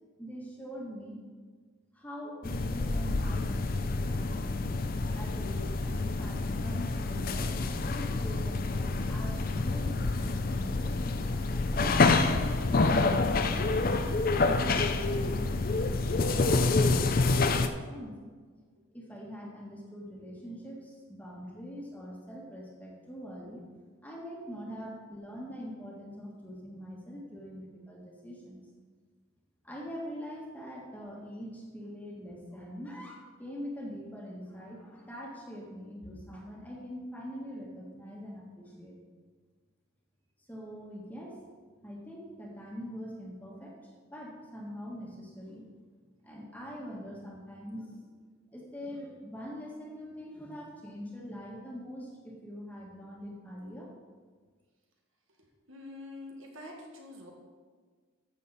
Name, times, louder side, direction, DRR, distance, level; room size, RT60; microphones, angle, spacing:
voice 1, 0.2-1.2 1.9-4.7 5.1-11.2 11.7-17.2 17.5-18.2 18.9-23.6 24.0-28.6 29.6-38.9 40.5-41.4 41.8-43.8 44.1-45.6 46.2-48.1 48.5-53.9, equal, 10° left, -3 dB, 1.5 m, -43 dB
sound 1, 2.4-17.7, left 3 dB, 45° left, 0.5 m, -28 dB
voice 2, 55.7-57.3, left 2 dB, 75° right, 0 dB, 1.8 m, -45 dB
14.0 x 6.7 x 4.1 m, 1.5 s
head